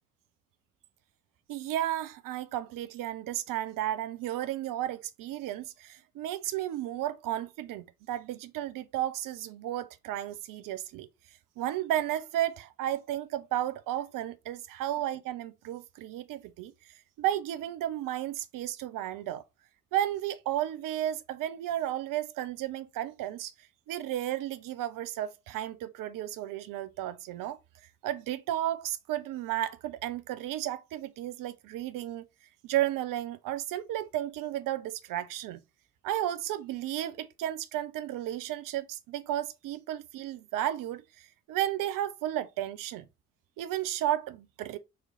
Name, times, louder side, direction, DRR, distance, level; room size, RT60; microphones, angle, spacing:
voice 1, 1.5-11.1 11.6-16.7 17.2-19.4 19.9-23.5 23.9-27.6 28.0-32.3 32.6-35.6 36.0-43.1 43.6-44.8, right 12 dB, 50° right, 0.6 m, -33 dB
4.1 x 2.8 x 3.7 m
figure-of-eight pair, 40°, 42 cm